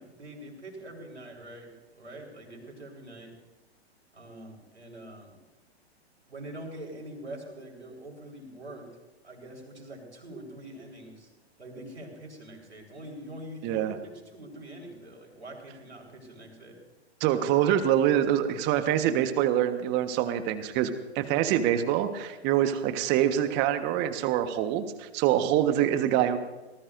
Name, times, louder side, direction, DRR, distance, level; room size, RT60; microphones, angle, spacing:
voice 1, 0.0-3.3 4.1-5.4 6.3-8.9 9.2-11.3 11.6-16.8 25.2-25.6, right 1 dB, 90° right, 1 dB, 4.9 m, -44 dB
voice 2, 13.6-14.0 17.2-26.4, right 11 dB, 30° right, 9 dB, 1.4 m, -25 dB
24.5 x 19.0 x 2.7 m, 1.1 s
figure-of-eight pair, 110°, 33 cm